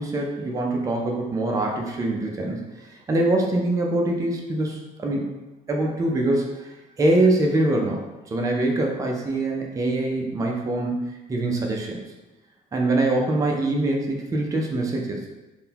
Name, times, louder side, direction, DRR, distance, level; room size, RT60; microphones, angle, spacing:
voice 1, 0.0-5.2 5.7-8.0 8.3-12.0 12.7-15.2, right 2 dB, 20° right, 0 dB, 0.4 m, -24 dB
3.6 x 2.2 x 2.8 m, 1.1 s
cardioid pair, 110°, 17 cm